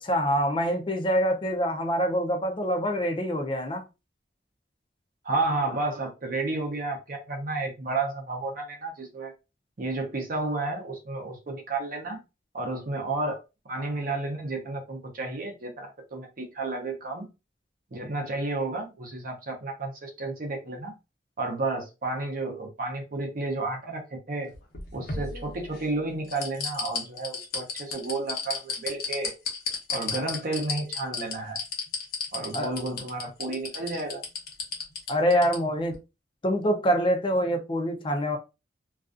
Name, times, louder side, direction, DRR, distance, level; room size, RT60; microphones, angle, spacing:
voice 1, 0.0-3.8 32.5-32.7 35.1-36.0 36.4-38.4, equal, 30° left, 0.4 m, -25 dB
voice 2, 5.2-9.3 9.8-12.2 12.5-13.4 13.7-17.2 17.9-20.9 21.4-24.0 24.3-24.5 24.9-29.3 29.9-31.6 32.3-34.2, right 2 dB, 50° right, 0.7 m, -31 dB
sound 1, 24.5-25.9 26.3-35.6 35.9-36.0, left 5 dB, 55° left, 0.8 m, -32 dB
2.4 x 2.3 x 2.4 m
head